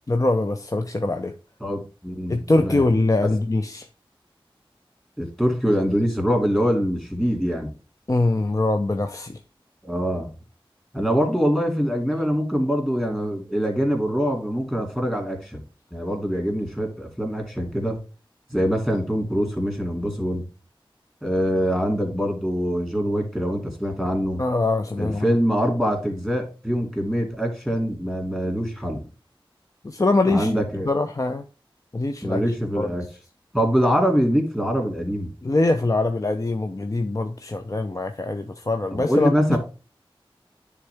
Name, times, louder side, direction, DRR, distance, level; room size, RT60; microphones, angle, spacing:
voice 1, 0.1-1.3 2.3-3.9 8.1-9.4 24.4-25.3 29.8-30.5 30.9-31.4 31.9-32.4 32.8-32.9 35.4-39.6, left 2 dB, 35° left, 0.5 m, -23 dB
voice 2, 1.6-2.9 3.2-3.3 5.2-7.7 9.8-10.3 10.9-15.6 15.9-18.0 18.5-20.4 21.2-24.4 25.0-29.0 30.3-30.9 32.2-33.0 33.5-35.3 38.9-39.6, equal, 5° left, 2.3 m, -24 dB
9.7 x 3.6 x 3.4 m
wide cardioid pair, 40°, 9 cm